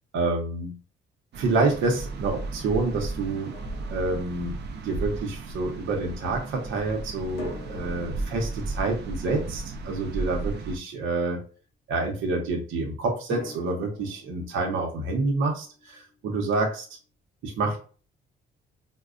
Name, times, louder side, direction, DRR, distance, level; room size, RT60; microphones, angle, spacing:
voice 1, 0.1-0.7 1.4-3.5 3.9-4.5 4.8-11.5 11.9-16.9 17.4-17.8, right 3 dB, 85° right, 1 dB, 0.8 m, -28 dB
sound 1, 1.3-10.8, right 3 dB, 60° right, 0.5 m, -35 dB
Drum, 3.5-4.9 7.4-10.4 13.3-16.2, left 3 dB, 85° left, 0.9 m, -45 dB
4.5 x 2.1 x 2.4 m, 0.38 s
cardioid pair, 90°, 20 cm